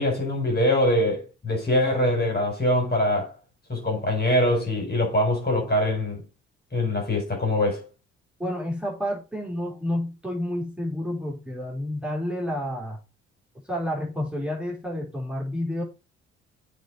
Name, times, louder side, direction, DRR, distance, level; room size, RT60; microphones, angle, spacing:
voice 1, 0.0-3.3 3.7-6.2 6.7-7.8, left 1 dB, 30° left, 5.0 m, -23 dB
voice 2, 8.4-13.0 13.7-15.8, left 1 dB, 5° right, 4.6 m, -30 dB
7.8 x 4.9 x 5.1 m
hypercardioid pair, 50°, 30 cm